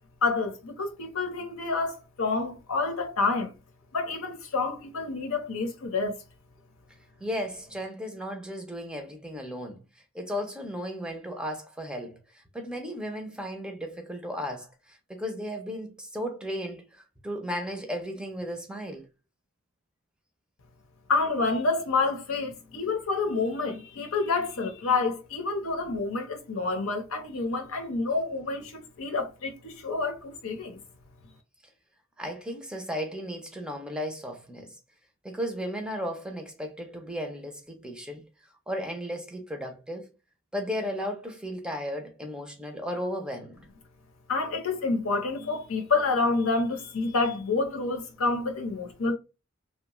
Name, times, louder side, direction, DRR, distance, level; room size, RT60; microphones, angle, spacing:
voice 1, 0.2-3.5 3.9-6.2 21.1-30.8 44.3-49.1, left 3 dB, 90° left, 0.8 m, -28 dB
voice 2, 7.2-9.8 10.1-12.2 12.5-19.1 32.2-34.7 35.2-38.3 38.7-40.1 40.5-43.6, equal, 5° right, 0.5 m, -35 dB
2.8 x 2.2 x 2.9 m
head